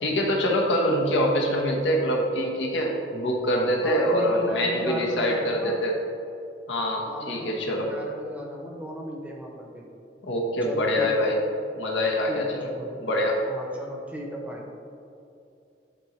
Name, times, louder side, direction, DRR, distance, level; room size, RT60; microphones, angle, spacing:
voice 1, 0.0-5.9 6.7-7.9 10.2-11.3 11.7-12.5 13.0-13.3, equal, 85° left, 0 dB, 1.1 m, -24 dB
voice 2, 3.8-5.8 7.1-9.9 10.6-11.1 12.3-12.9 13.4-14.7, equal, 10° right, -1 dB, 0.7 m, -35 dB
10.5 x 3.9 x 3.1 m, 2.7 s
head